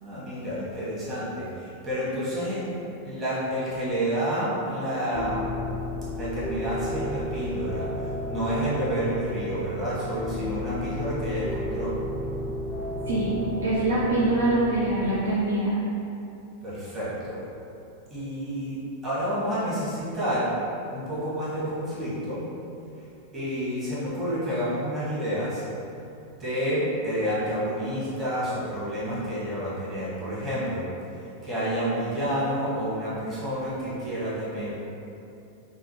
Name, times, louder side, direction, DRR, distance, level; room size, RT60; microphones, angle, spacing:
voice 1, 0.0-2.6 3.0-5.7 6.1-11.9 16.6-17.4 18.1-18.8 19.0-20.5 20.9-22.4 23.3-25.7 26.4-30.8 31.2-34.7, equal, 25° right, -10 dB, 1.2 m, -29 dB
sound 1, 5.1-15.2, left 1 dB, 10° left, 0.4 m, -33 dB
voice 2, 13.1-15.8, right 2 dB, 70° right, -6 dB, 0.4 m, -24 dB
3.5 x 2.1 x 3.0 m, 2.7 s
figure-of-eight pair, 90°, 0 cm